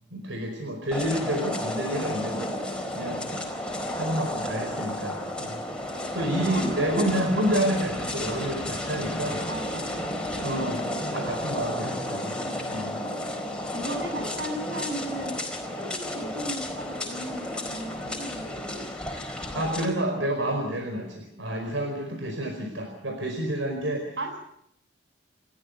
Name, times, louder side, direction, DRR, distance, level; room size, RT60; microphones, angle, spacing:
voice 1, 0.1-3.4 3.9-5.6 6.1-9.4 10.3-12.4 12.7-13.0 19.5-24.2, right 1 dB, 85° right, 3 dB, 4.8 m, -29 dB
sound 1, 0.9-19.8, left 1 dB, 5° left, 4.4 m, -32 dB
voice 2, 6.4-7.4 9.5-10.2 10.5-10.8 13.7-15.4 15.7-18.9 24.2-24.4, right 1 dB, 70° right, 5 dB, 7.3 m, -36 dB
29.0 x 14.5 x 8.2 m, 0.74 s
head